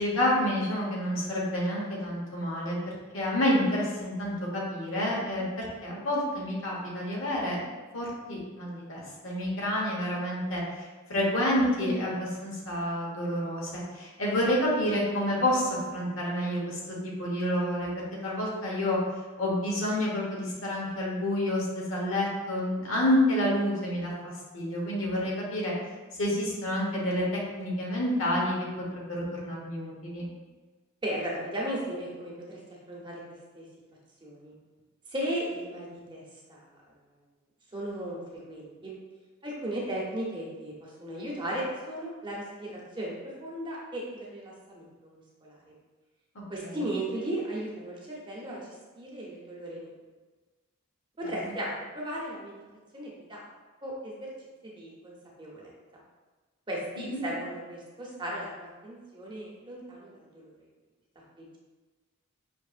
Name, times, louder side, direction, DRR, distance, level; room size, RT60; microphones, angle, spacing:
voice 1, 0.0-2.8 3.1-7.6 7.9-17.9 18.2-19.0 19.4-25.7 26.2-30.3 46.6-46.8 51.2-51.3 57.0-57.2, left 1 dB, 75° left, -3 dB, 1.1 m, -29 dB
voice 2, 31.0-32.6 32.9-33.2 33.5-33.6 34.2-34.5 35.1-36.2 36.5-36.6 37.7-38.2 38.5-38.9 39.4-43.1 43.4-45.5 46.5-49.9 51.2-52.5 52.9-53.4 53.8-54.3 54.6-55.7 56.7-60.5 61.4-61.6, right 1 dB, 25° right, -4 dB, 0.8 m, -36 dB
5.3 x 3.0 x 2.5 m, 1.3 s
head